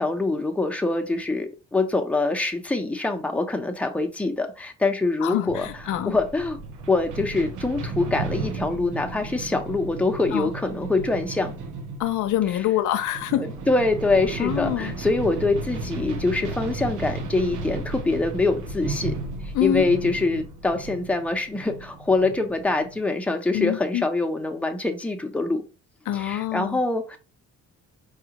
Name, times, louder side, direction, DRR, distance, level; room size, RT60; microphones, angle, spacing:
voice 1, 0.0-5.7 6.1-6.6 6.9-11.5 13.4-19.1 19.4-25.6 26.1-27.2, left 3 dB, 5° left, 0.7 m, -24 dB
voice 2, 5.2-6.1 10.3-10.5 12.0-13.4 14.4-14.9 19.5-19.9 23.5-24.0 26.1-26.8, left 12 dB, 80° left, 0.6 m, -25 dB
sound 1, 5.4-23.0, right 3 dB, 80° right, 0.8 m, -34 dB
4.7 x 2.4 x 2.9 m
cardioid pair, 90°, 30 cm